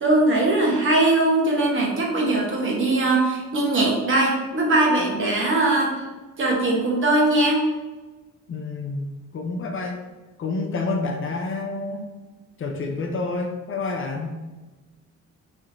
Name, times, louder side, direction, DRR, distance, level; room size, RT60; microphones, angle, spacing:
voice 1, 0.0-6.1 6.4-7.6, right 2 dB, 40° right, -2 dB, 1.1 m, -20 dB
voice 2, 8.5-10.0 10.4-12.1 12.6-14.4, left 3 dB, 45° left, 2 dB, 0.6 m, -28 dB
4.3 x 2.7 x 2.6 m, 1.2 s
cardioid pair, 90°, 30 cm